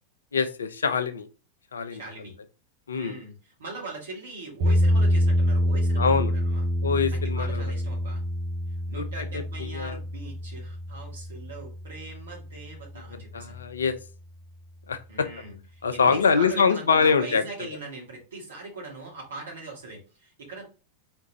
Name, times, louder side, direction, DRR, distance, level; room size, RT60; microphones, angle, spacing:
voice 1, 0.3-1.3 1.7-2.0 2.9-3.2 6.0-6.3 6.8-7.7 8.9-10.0 13.3-14.0 14.9-15.3 15.8-17.7, left 5 dB, 70° left, 11 dB, 0.5 m, -24 dB
voice 2, 1.9-2.3 2.9-6.7 7.1-8.2 8.9-13.6 15.1-20.6, right 3 dB, 65° right, -1 dB, 2.3 m, -41 dB
sound 1, 4.6-12.7, equal, 40° right, 1.2 m, -26 dB
4.4 x 3.6 x 3.0 m, 0.34 s
figure-of-eight pair, 90°, 0 cm